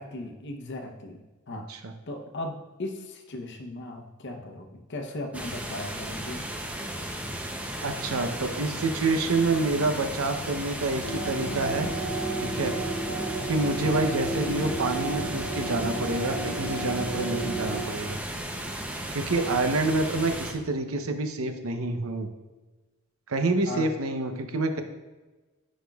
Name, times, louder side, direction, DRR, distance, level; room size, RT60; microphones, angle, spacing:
voice 1, 0.0-1.7 2.1-6.5 14.1-14.2 23.7-23.9, left 2 dB, 60° left, 4 dB, 0.8 m, -37 dB
voice 2, 1.5-1.9 7.8-11.9 12.4-12.7 13.4-18.2 19.1-22.3 23.3-24.8, right 2 dB, 85° right, 7 dB, 0.7 m, -27 dB
sound 1, 5.3-20.5, right 1 dB, 5° right, 0.6 m, -35 dB
sound 2, 11.0-17.8, right 2 dB, 60° right, 2.0 m, -32 dB
9.9 x 5.1 x 2.3 m, 1.1 s
head